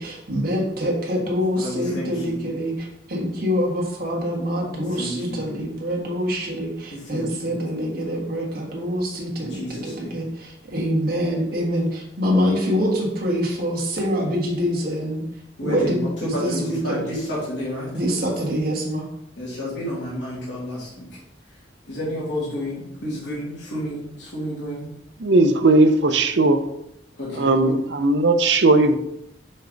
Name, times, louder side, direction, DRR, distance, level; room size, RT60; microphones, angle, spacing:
voice 1, 0.0-15.2 15.6-17.0 17.9-19.1, equal, 55° right, -2 dB, 1.6 m, -25 dB
voice 2, 1.5-2.4 4.9-5.4 6.9-7.5 9.4-10.2 15.6-17.9 19.4-21.1 21.9-24.9 27.2-27.7, equal, 85° left, -8 dB, 2.2 m, -31 dB
voice 3, 25.2-26.6 27.3-29.0, right 2 dB, 70° right, 8 dB, 0.6 m, -17 dB
5.4 x 5.0 x 3.9 m, 0.80 s
head